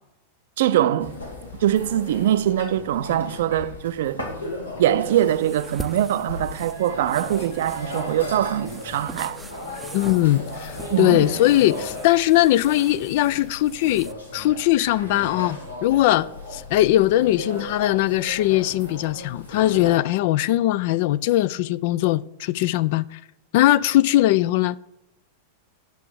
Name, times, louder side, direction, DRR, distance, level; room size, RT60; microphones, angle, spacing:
voice 1, 0.6-1.1 1.6-4.2 4.8-9.4 10.9-11.3, right 11 dB, 55° right, 0.5 m, -22 dB
sound 1, 1.0-20.0, left 1 dB, 85° left, 1.9 m, -36 dB
sound 2, 5.1-14.1, right 2 dB, 10° right, 0.5 m, -42 dB
voice 2, 9.9-23.2 23.5-24.7, left 15 dB, 50° left, 0.3 m, -20 dB
9.2 x 6.7 x 4.7 m
figure-of-eight pair, 90°, 0 cm